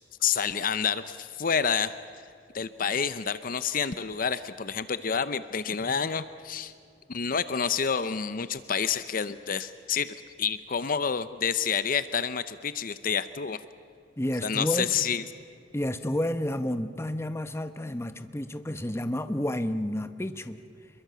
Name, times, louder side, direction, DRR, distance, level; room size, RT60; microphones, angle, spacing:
voice 1, 0.2-1.9 2.5-6.7 7.1-13.6 14.4-15.2, left 6 dB, 50° left, 13 dB, 0.7 m, -28 dB
voice 2, 14.2-14.9 15.7-20.6, left 1 dB, 15° left, 10 dB, 0.9 m, -30 dB
27.0 x 22.5 x 6.9 m, 2.4 s
head